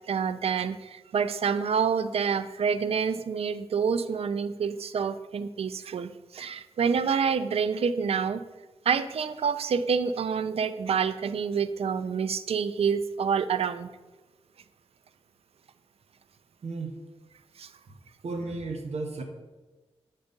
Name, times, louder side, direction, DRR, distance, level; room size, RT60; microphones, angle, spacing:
voice 1, 0.1-8.4 8.9-13.9 17.6-17.7, right 6 dB, 70° right, 12 dB, 0.4 m, -27 dB
voice 2, 16.6-17.0 17.9-18.0 18.2-19.2, right 3 dB, 85° right, 4 dB, 0.9 m, -34 dB
8.0 x 3.9 x 5.1 m, 1.2 s
wide cardioid pair, 160°, 11 cm